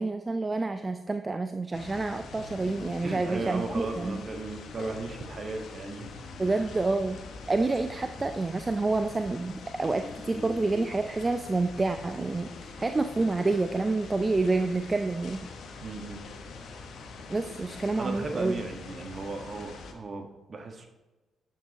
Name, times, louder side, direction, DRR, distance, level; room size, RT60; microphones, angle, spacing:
voice 1, 0.0-4.2 6.4-7.2 7.5-15.5 17.3-18.6, right 3 dB, 30° right, 9 dB, 0.5 m, -28 dB
sound 1, 1.7-19.9, left 4 dB, 60° left, 1.2 m, -44 dB
sound 2, 2.5-8.7 9.0-11.0, left 4 dB, 40° left, 0.8 m, -49 dB
voice 2, 3.0-6.2 6.5-6.6 15.8-16.2 17.9-20.9, right 3 dB, 45° right, 4 dB, 1.4 m, -36 dB
12.0 x 7.5 x 2.9 m, 1.2 s
hypercardioid pair, 40°, 0 cm